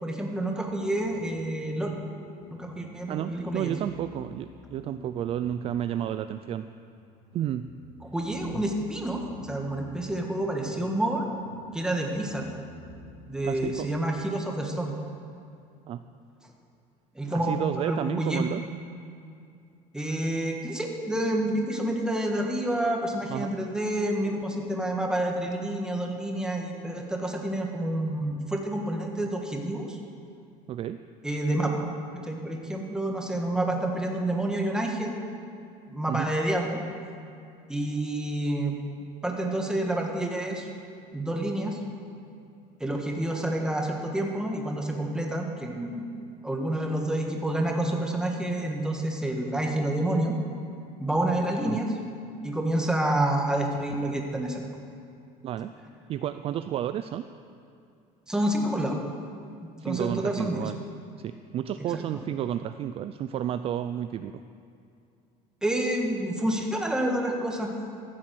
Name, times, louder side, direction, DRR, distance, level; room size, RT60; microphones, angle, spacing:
voice 1, 0.0-1.9 2.6-3.7 8.1-11.3 11.7-12.5 13.2-14.9 17.1-18.7 19.9-30.0 31.2-31.8 32.2-35.1 35.9-36.8 37.7-38.8 39.2-40.7 41.1-41.8 42.8-46.1 46.4-50.3 51.0-51.9 52.4-54.6 58.3-59.0 59.8-60.6 61.9-62.0 65.6-67.7, right 1 dB, 5° right, 1 dB, 1.5 m, -28 dB
sound 1, 0.7-13.7, left 1 dB, 75° left, 3.4 m, -49 dB
voice 2, 3.1-6.7 7.3-7.7 8.5-8.6 13.4-13.9 15.9-16.0 17.3-18.6 23.3-23.5 29.2-29.3 30.7-31.0 36.1-36.3 51.7-51.8 55.4-55.7 56.1-57.3 59.8-60.8 61.2-64.3, right 11 dB, 35° right, 10 dB, 0.3 m, -31 dB
14.5 x 7.6 x 7.6 m, 2.5 s
cardioid pair, 145°, 16 cm